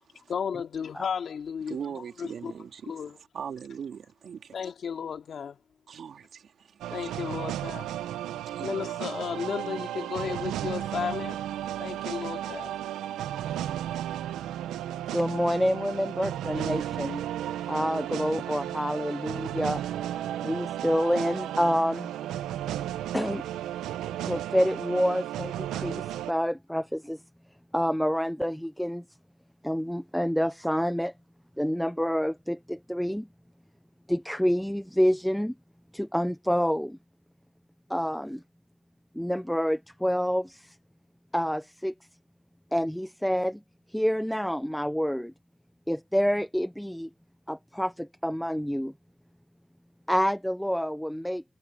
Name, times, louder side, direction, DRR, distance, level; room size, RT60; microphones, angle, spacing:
voice 1, 0.3-2.5 2.8-3.2 4.5-5.6 6.9-7.9 8.6-11.4 11.8-12.7, left 7 dB, 55° left, 2.8 m, -34 dB
voice 2, 1.7-3.0 3.3-4.5 5.9-7.1 8.5-9.0, right 7 dB, 55° right, 3.3 m, -40 dB
sound 1, 6.8-26.3, right 12 dB, 90° right, 1.1 m, -34 dB
voice 3, 15.1-17.2 17.6-19.8 20.4-22.1 23.1-23.4 24.2-27.2 27.7-29.0 29.6-31.1 31.6-33.3 34.1-35.5 35.9-37.0 37.9-38.4 39.1-40.8 41.3-41.9 42.7-43.6 43.9-45.3 45.9-47.1 47.5-48.9 50.1-51.4, equal, ahead, 0.8 m, -28 dB
cardioid pair, 100°, 0 cm